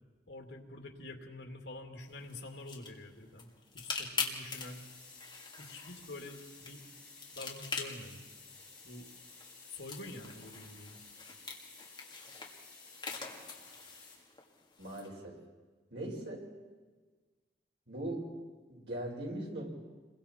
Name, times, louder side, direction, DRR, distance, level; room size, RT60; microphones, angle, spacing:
voice 1, 0.3-4.8 5.6-6.8 7.3-8.3 8.8-9.1 9.7-11.0, left 2 dB, 85° left, 3 dB, 2.6 m, -47 dB
sound 1, 2.1-15.1, left 4 dB, 25° left, 2.2 m, -44 dB
sound 2, 4.3-14.1, left 4 dB, 5° left, 7.0 m, -54 dB
voice 2, 14.8-15.3 15.9-16.5 17.9-18.3 18.7-19.8, right 1 dB, 85° right, -2 dB, 5.4 m, -40 dB
29.0 x 22.5 x 4.5 m, 1.4 s
head